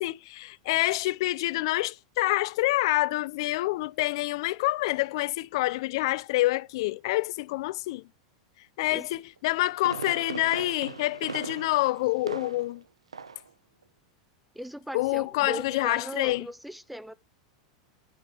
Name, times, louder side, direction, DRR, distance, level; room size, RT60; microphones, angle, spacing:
voice 1, 0.0-8.0 8.8-12.8 14.9-16.5, left 19 dB, 60° left, 0.7 m, -27 dB
Fireworks, 9.4-12.8 13.1-13.5 13.8-13.9, right 5 dB, 90° right, 1.1 m, -39 dB
voice 2, 14.5-17.1, right 1 dB, ahead, 1.2 m, -38 dB
12.5 x 7.4 x 7.7 m
hypercardioid pair, 95°, 3 cm